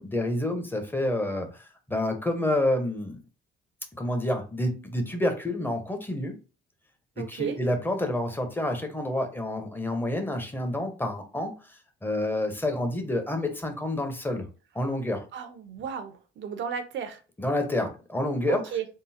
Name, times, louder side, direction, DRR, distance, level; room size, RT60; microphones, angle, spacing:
voice 1, 0.0-3.2 3.9-6.4 7.3-11.5 12.0-14.4 14.7-15.2 17.4-18.6, left 1 dB, 10° left, 0.9 m, -28 dB
voice 2, 7.2-7.6 15.3-17.2 18.5-18.9, right 7 dB, 70° right, 0.8 m, -34 dB
3.8 x 2.0 x 4.2 m
cardioid pair, 90°, 20 cm